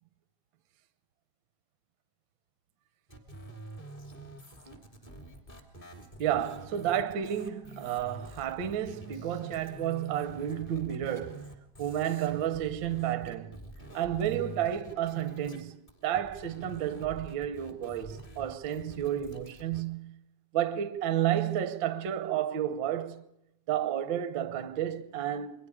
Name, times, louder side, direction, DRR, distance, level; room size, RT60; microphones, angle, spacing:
sound 1, 3.1-15.6 15.9-19.8, right 1 dB, 15° left, 2.8 m, -47 dB
voice 1, 6.2-11.5 11.8-13.6 13.9-15.8 16.0-20.2 20.5-23.2 23.7-25.7, right 11 dB, 60° right, 1.3 m, -31 dB
29.0 x 22.5 x 5.0 m
omnidirectional pair, 3.5 m